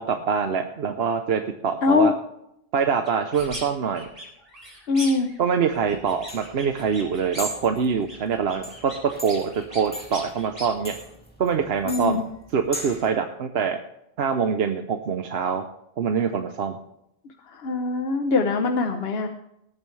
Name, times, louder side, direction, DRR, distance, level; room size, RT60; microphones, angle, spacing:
voice 1, 0.0-2.1 2.7-4.1 5.4-11.0 11.4-12.2 12.5-13.8 14.2-15.6 16.0-16.8, right 6 dB, 80° right, 6 dB, 1.0 m, -24 dB
voice 2, 1.8-2.1 4.9-5.3 11.9-12.2 17.5-19.3, left 4 dB, 75° left, 5 dB, 1.1 m, -22 dB
sound 1, 3.1-3.7 3.9-5.4 5.7-7.6 7.9-10.7, right 1 dB, 35° right, 4.0 m, -40 dB
sound 2, 5.7-13.1, equal, 10° left, 2.4 m, -39 dB
19.0 x 9.0 x 3.2 m, 0.80 s
omnidirectional pair, 1.0 m